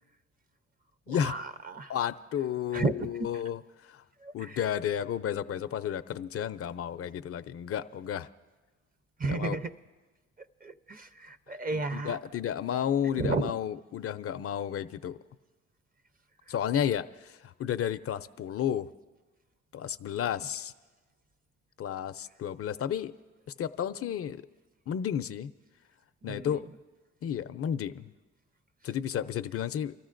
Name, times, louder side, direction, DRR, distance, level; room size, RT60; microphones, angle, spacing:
voice 1, 1.1-1.9 2.7-3.4 4.2-4.6 9.2-9.7 10.4-12.2 13.2-13.5 16.5-16.6 26.2-26.7, right 3 dB, 30° right, 11 dB, 0.6 m, -33 dB
voice 2, 1.9-4.0 4.3-8.3 9.3-9.6 11.5-15.2 16.5-18.9 19.7-20.7 21.8-23.1 23.6-24.4 24.9-25.5 26.2-26.6 27.2-28.1 28.8-29.9, left 9 dB, 50° left, 11 dB, 0.5 m, -32 dB
29.5 x 13.5 x 2.5 m, 1.2 s
cardioid pair, 90°, 30 cm